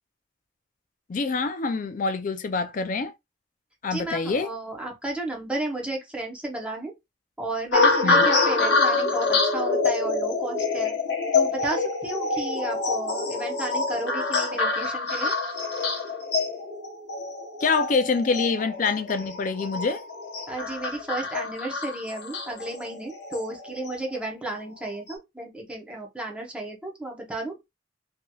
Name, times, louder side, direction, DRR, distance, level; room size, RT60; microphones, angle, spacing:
voice 1, 1.1-3.1 3.8-4.5 8.0-8.2 17.6-20.0, left 4 dB, 40° left, 0.4 m, -26 dB
voice 2, 3.9-6.9 7.4-10.9 11.3-15.3 20.5-27.6, right 2 dB, 5° right, 0.8 m, -33 dB
sound 1, 7.7-24.2 24.8-25.1, left 3 dB, 60° left, 0.9 m, -26 dB
3.0 x 2.8 x 2.3 m
head